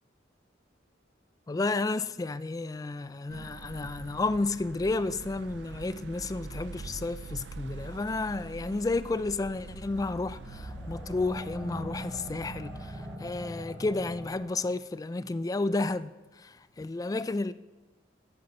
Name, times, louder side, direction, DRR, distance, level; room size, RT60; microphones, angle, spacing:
voice 1, 1.5-17.5, left 3 dB, 20° left, 0.3 m, -32 dB
sound 1, 3.3-13.2, right 4 dB, 70° right, 0.4 m, -45 dB
sound 2, 9.3-14.7, equal, 5° left, 3.7 m, -42 dB
8.7 x 8.1 x 6.8 m
head